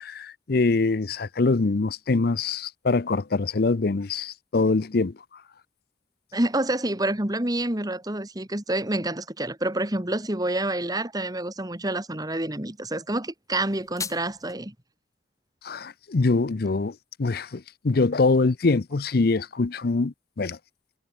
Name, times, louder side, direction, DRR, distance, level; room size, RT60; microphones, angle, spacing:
voice 1, 0.0-5.1 15.6-20.6, left 3 dB, 55° left, 0.6 m, -24 dB
voice 2, 6.3-14.7, right 1 dB, 20° right, 2.0 m, -28 dB
sound 1, 13.5-14.5, left 5 dB, 15° left, 6.7 m, -37 dB
head